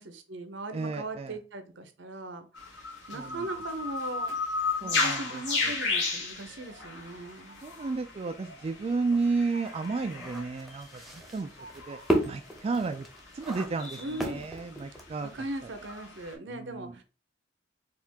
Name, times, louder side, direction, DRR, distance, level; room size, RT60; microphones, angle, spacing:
voice 1, 0.0-2.5 3.1-4.4 4.8-7.6 14.0-14.5 15.2-17.0, right 2 dB, 70° right, 0.7 m, -39 dB
voice 2, 0.7-1.4 3.1-3.4 4.8-5.7 7.6-11.5 11.9-12.0 12.2-13.1 13.3-15.3 16.5-16.9, right 4 dB, 35° right, 0.3 m, -32 dB
sound 1, 2.5-16.3, left 3 dB, 70° left, 1.6 m, -35 dB
sound 2, 9.1-15.3, right 1 dB, ahead, 0.8 m, -34 dB
4.5 x 2.5 x 3.4 m
head